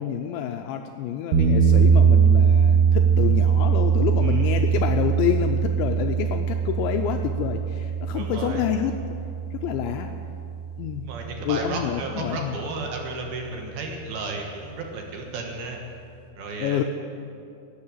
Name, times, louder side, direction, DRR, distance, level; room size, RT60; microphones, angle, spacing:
voice 1, 0.0-8.9 9.5-10.1 10.8-11.1 11.4-12.6 16.6-16.8, left 10 dB, 85° left, 5 dB, 2.6 m, -28 dB
sound 1, 1.3-11.4, right 7 dB, 85° right, 4.2 m, -21 dB
voice 2, 4.2-4.5 8.1-8.7 11.1-15.8 16.4-16.8, right 3 dB, 65° right, 2 dB, 2.7 m, -33 dB
13.0 x 9.7 x 8.9 m, 2.6 s
omnidirectional pair, 5.8 m